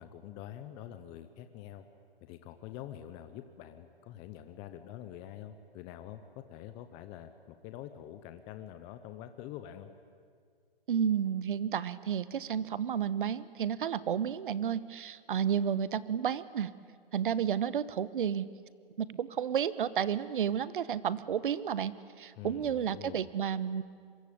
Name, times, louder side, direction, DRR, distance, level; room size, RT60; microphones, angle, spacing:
voice 1, 0.0-1.9 2.2-9.9 22.4-23.3, left 11 dB, 15° left, 9 dB, 0.8 m, -46 dB
voice 2, 10.9-16.7 17.1-18.5 19.0-23.8, right 8 dB, 60° right, 17 dB, 1.2 m, -31 dB
26.5 x 23.0 x 8.7 m, 2.1 s
hypercardioid pair, 150°, 30 cm